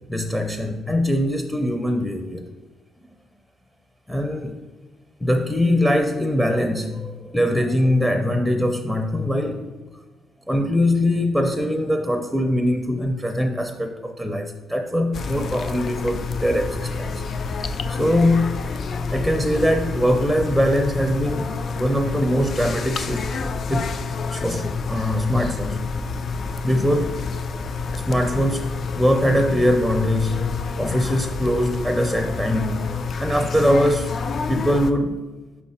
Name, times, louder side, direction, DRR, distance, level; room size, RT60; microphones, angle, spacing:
voice 1, 0.1-2.5 4.1-4.5 5.2-9.7 10.5-17.2 17.5-18.7 19.1-23.3 23.7-24.0 24.3-25.9 26.6-27.2 28.1-32.9 33.2-34.1 34.5-35.2, left 1 dB, 5° left, 4 dB, 0.5 m, -22 dB
sound 1, 15.1-34.9, left 4 dB, 55° left, 0.4 m, -28 dB
5.5 x 5.1 x 4.2 m, 1.2 s
cardioid pair, 90°, 0 cm